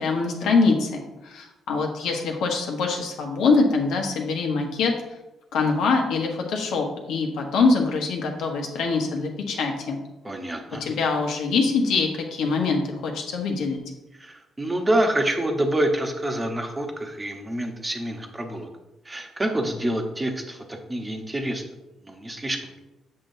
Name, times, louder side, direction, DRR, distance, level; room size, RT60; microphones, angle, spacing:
voice 1, 0.0-4.9 5.5-10.0 10.8-13.8, left 4 dB, 80° left, 1 dB, 1.2 m, -24 dB
voice 2, 10.2-10.8 14.2-18.7 19.0-21.6 22.0-22.8, right 1 dB, 20° right, 3 dB, 1.1 m, -27 dB
7.6 x 5.9 x 2.7 m, 0.98 s
cardioid pair, 90°, 0 cm